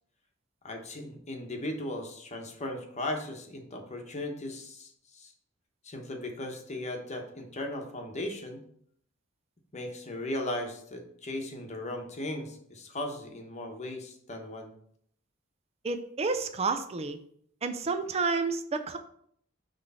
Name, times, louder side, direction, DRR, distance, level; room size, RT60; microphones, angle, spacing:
voice 1, 0.6-5.3 5.8-8.6 9.7-14.7, left 1 dB, 35° left, 3 dB, 1.0 m, -37 dB
voice 2, 15.8-17.2 17.6-19.0, right 4 dB, 30° right, 8 dB, 0.4 m, -30 dB
6.3 x 3.2 x 5.5 m, 0.66 s
head